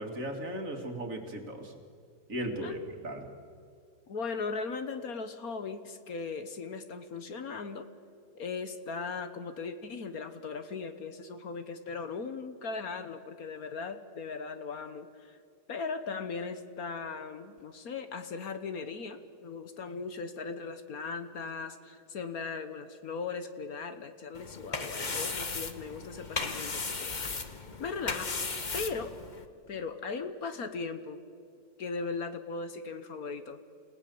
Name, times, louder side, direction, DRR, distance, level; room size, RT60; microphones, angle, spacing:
voice 1, 0.0-1.8 2.3-3.3, right 1 dB, 50° right, 4 dB, 2.6 m, -37 dB
voice 2, 4.1-7.9 8.3-15.4 15.7-27.2 27.8-28.4 28.7-29.1 29.7-31.2 31.8-33.6, left 4 dB, 60° left, 9 dB, 1.5 m, -38 dB
sound 1, 24.3-29.5, left 4 dB, 30° left, 1.2 m, -36 dB
29.0 x 17.5 x 6.9 m, 2.4 s
omnidirectional pair, 1.9 m